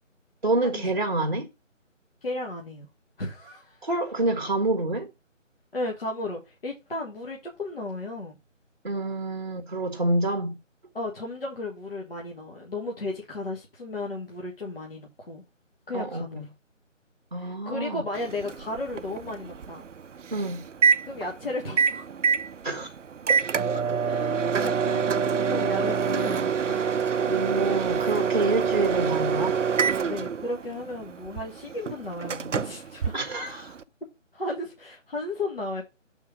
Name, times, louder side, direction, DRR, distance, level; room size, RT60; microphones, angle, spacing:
voice 1, 0.4-1.5 3.8-5.1 8.8-10.6 15.9-16.4 17.3-18.0 20.3-20.6 22.6-22.9 27.2-29.6 33.1-33.8, right 2 dB, 35° right, 0.8 m, -27 dB
voice 2, 2.2-2.9 3.2-3.9 5.7-8.4 10.9-15.4 15.9-16.5 17.4-19.9 21.0-22.1 24.1-27.0 30.0-33.1 33.5-33.6 34.3-35.8, left 2 dB, 45° left, 1.4 m, -34 dB
Microwave oven, 18.1-33.8, right 6 dB, 70° right, 0.5 m, -26 dB
7.1 x 3.8 x 4.6 m
figure-of-eight pair, 175°, 39 cm